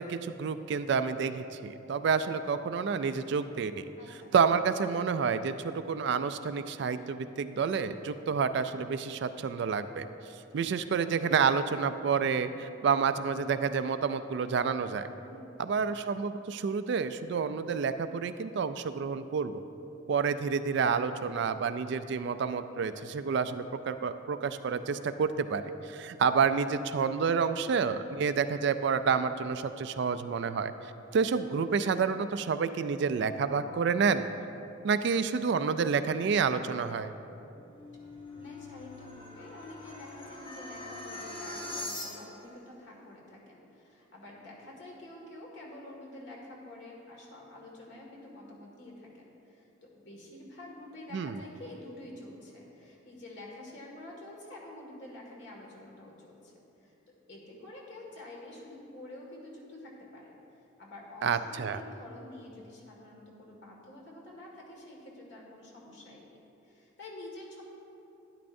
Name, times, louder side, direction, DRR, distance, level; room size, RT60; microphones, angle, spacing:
voice 1, 0.0-3.8 4.3-10.1 10.5-15.1 15.6-19.6 20.1-34.3 34.8-37.1 51.1-51.4 61.2-61.8, right 6 dB, 55° right, 11 dB, 0.3 m, -29 dB
voice 2, 4.0-4.3 15.2-15.6 38.3-56.5 56.8-56.9 57.3-66.4 66.6-67.6, left 1 dB, 60° left, -2 dB, 1.9 m, -48 dB
sound 1, 37.6-42.5, left 2 dB, 25° left, 1.2 m, -42 dB
12.0 x 10.5 x 2.6 m, 2.8 s
head